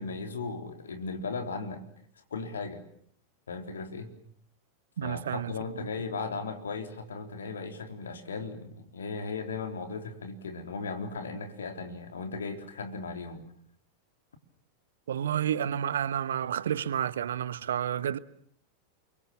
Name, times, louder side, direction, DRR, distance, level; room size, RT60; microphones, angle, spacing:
voice 1, 0.0-1.8 2.2-2.8 3.5-4.1 5.0-13.4, left 4 dB, 70° left, 3.8 m, -37 dB
voice 2, 5.0-5.5 15.1-18.2, right 9 dB, 65° right, 1.1 m, -30 dB
29.5 x 24.0 x 7.5 m
figure-of-eight pair, 90°, 0 cm